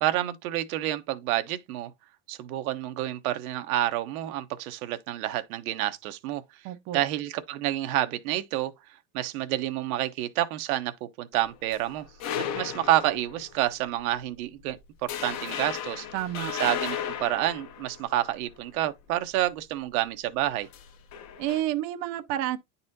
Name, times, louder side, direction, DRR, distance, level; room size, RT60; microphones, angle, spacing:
voice 1, 0.0-1.9 2.3-6.4 6.9-8.7 9.1-12.1 12.5-14.8 15.0-16.1 16.6-20.7, right 14 dB, 85° right, 1.0 m, -29 dB
voice 2, 6.6-7.0 16.1-16.5 21.4-22.6, right 13 dB, 40° right, 0.5 m, -30 dB
sound 1, 11.3-13.6 14.0-14.2 14.6-14.7 15.1-18.6 20.6-21.6, left 9 dB, 40° left, 0.9 m, -35 dB
9.8 x 4.1 x 2.7 m
supercardioid pair, 155°, 42 cm